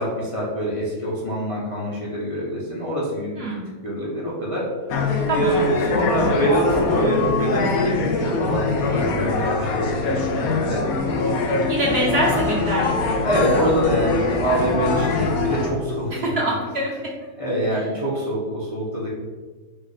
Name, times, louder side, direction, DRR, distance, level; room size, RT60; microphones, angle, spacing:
voice 1, 0.0-3.5 3.8-4.7 5.3-10.9 13.2-16.3 17.3-19.1, equal, 30° left, -6 dB, 0.7 m, -25 dB
voice 2, 3.4-3.7 5.3-5.6 11.7-13.1 16.1-16.9, right 1 dB, 50° right, -4 dB, 1.2 m, -24 dB
sound 1, 4.9-15.7, left 3 dB, 80° left, 1.1 m, -23 dB
5.0 x 2.4 x 4.0 m, 1.4 s
omnidirectional pair, 1.5 m